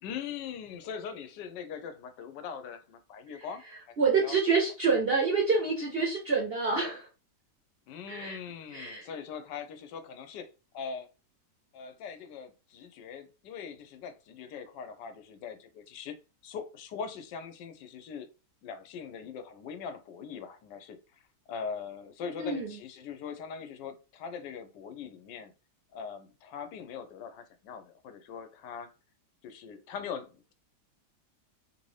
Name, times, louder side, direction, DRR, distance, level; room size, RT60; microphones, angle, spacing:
voice 1, 0.0-3.6 4.2-4.4 7.9-10.5 10.7-11.1 11.7-16.2 16.4-18.3 18.6-21.0 21.5-25.5 25.9-28.9 29.4-30.5, left 6 dB, 90° left, 9 dB, 1.2 m, -41 dB
voice 2, 3.3-7.1 8.1-8.4 8.7-9.1 22.3-22.8, right 4 dB, 55° right, -1 dB, 0.6 m, -28 dB
3.2 x 2.6 x 3.1 m, 0.32 s
omnidirectional pair, 1.8 m